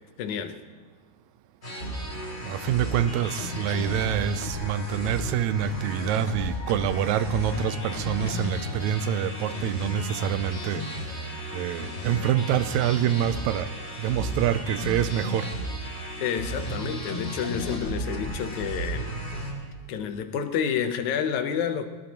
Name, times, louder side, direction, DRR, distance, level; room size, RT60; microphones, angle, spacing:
voice 1, 0.2-0.6 16.2-19.2 19.9-21.9, left 8 dB, 80° left, 2.3 m, -29 dB
sound 1, 1.6-19.5, equal, 20° left, 2.8 m, -34 dB
voice 2, 2.4-15.5, right 9 dB, 80° right, 1.9 m, -26 dB
20.5 x 20.0 x 3.0 m
omnidirectional pair, 3.3 m